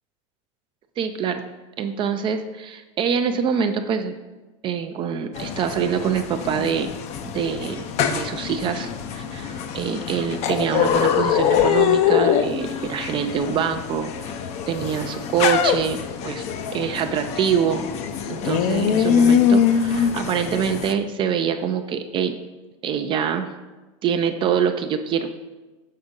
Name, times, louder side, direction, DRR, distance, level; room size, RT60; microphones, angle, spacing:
voice 1, 1.0-1.4 1.8-4.2 4.6-6.9 7.2-14.4 14.7-16.5 16.7-17.9 18.2-22.3 22.8-23.5 24.0-25.3, right 7 dB, 30° right, 7 dB, 0.4 m, -25 dB
sound 1, 5.3-20.9, left 8 dB, 40° left, 0.5 m, -23 dB
6.5 x 3.5 x 5.2 m, 1.2 s
supercardioid pair, 120°, 17 cm